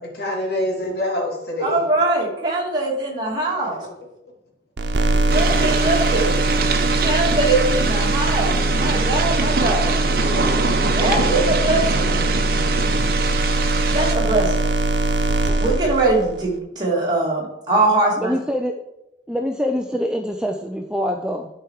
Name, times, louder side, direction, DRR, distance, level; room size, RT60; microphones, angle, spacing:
voice 1, 0.0-1.8 7.0-7.5, left 1 dB, 65° left, -1 dB, 2.5 m, -26 dB
voice 2, 1.6-3.8 5.2-6.3 7.0-9.9 10.8-12.1 13.9-14.5 15.6-18.3, right 2 dB, 25° right, -3 dB, 2.4 m, -22 dB
sound 1, 4.8-16.4, right 2 dB, 90° right, 0.9 m, -21 dB
sound 2, 5.3-14.1, right 4 dB, 55° right, 0.9 m, -24 dB
voice 3, 18.2-18.7 19.3-21.5, equal, 5° right, 3 dB, 0.4 m, -24 dB
11.5 x 4.6 x 4.8 m, 0.87 s
head